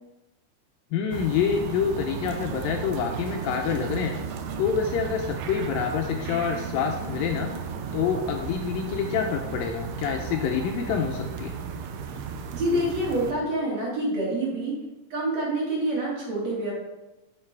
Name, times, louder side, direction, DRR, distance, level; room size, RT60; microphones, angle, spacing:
voice 1, 0.9-4.2 4.6-7.5 7.9-11.5, left 7 dB, 80° left, 3 dB, 2.2 m, -27 dB
sound 1, 1.1-13.3, right 6 dB, 80° right, 2.8 m, -34 dB
voice 2, 12.5-14.8 15.1-16.7, right 1 dB, 45° right, -5 dB, 3.5 m, -27 dB
9.7 x 6.8 x 4.7 m, 0.99 s
omnidirectional pair, 4.5 m